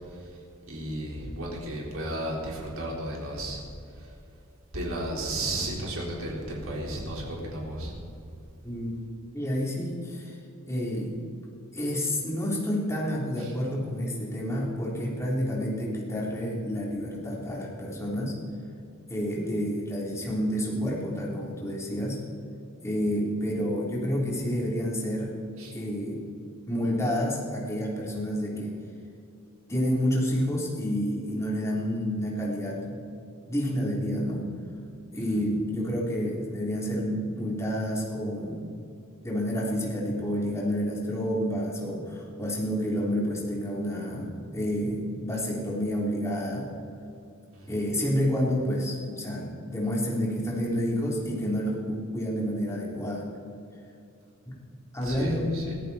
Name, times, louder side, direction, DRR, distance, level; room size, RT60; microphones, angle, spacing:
voice 1, 0.7-3.6 4.0-4.1 4.7-8.0 13.4-13.5 25.6-25.7 35.1-35.4 47.5-47.7 55.0-55.7, right 1 dB, 65° right, -3 dB, 4.2 m, -34 dB
voice 2, 9.3-10.3 10.6-11.2 11.7-18.4 19.1-22.2 22.8-25.3 25.7-26.2 26.7-28.7 29.7-33.0 33.5-34.5 35.1-38.7 39.2-46.7 47.7-53.3 54.9-55.5, equal, 15° left, -4 dB, 3.3 m, -29 dB
22.5 x 14.5 x 4.2 m, 2.6 s
head